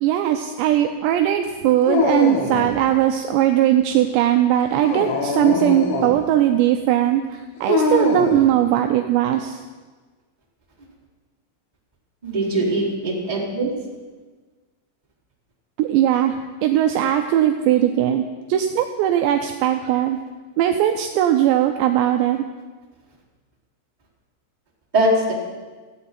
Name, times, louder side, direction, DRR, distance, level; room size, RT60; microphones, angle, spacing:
voice 1, 0.0-9.6 15.8-18.2 18.5-20.2 20.6-22.5, right 11 dB, 85° right, 6 dB, 2.5 m, -19 dB
Dog, 1.8-2.8 4.7-6.2 7.7-8.5, left 4 dB, 90° left, 4.3 m, -22 dB
voice 2, 12.2-13.7 24.9-25.3, right 1 dB, 10° right, -7 dB, 3.1 m, -21 dB
17.0 x 15.0 x 4.3 m, 1.3 s
omnidirectional pair, 5.8 m